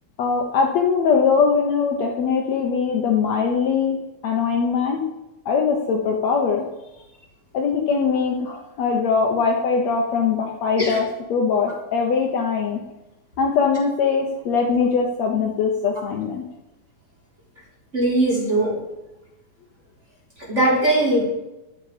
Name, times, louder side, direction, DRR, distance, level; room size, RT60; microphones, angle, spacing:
voice 1, 0.2-4.0 4.2-5.0 5.4-6.6 7.5-12.8 13.4-16.4, left 5 dB, 85° left, 1 dB, 1.5 m, -21 dB
voice 2, 17.9-18.7 20.5-21.3, right 1 dB, 20° right, -5 dB, 3.8 m, -19 dB
12.0 x 10.0 x 5.0 m, 0.97 s
omnidirectional pair, 4.7 m